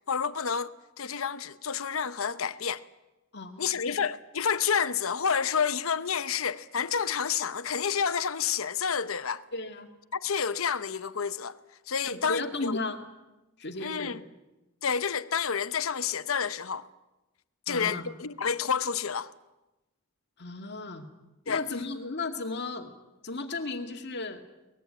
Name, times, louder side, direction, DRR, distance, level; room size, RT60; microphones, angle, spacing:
voice 1, 0.1-2.8 3.6-9.4 10.1-11.6 11.9-12.8 13.8-14.2 14.8-16.8 17.7-19.3 21.5-21.6, left 6 dB, 75° left, 0.9 m, -29 dB
voice 2, 3.3-4.0 9.5-9.9 12.0-13.0 13.6-14.2 17.7-18.1 20.4-21.1 21.5-22.9 23.2-24.4, left 3 dB, 50° left, 2.2 m, -35 dB
23.5 x 20.0 x 9.0 m
head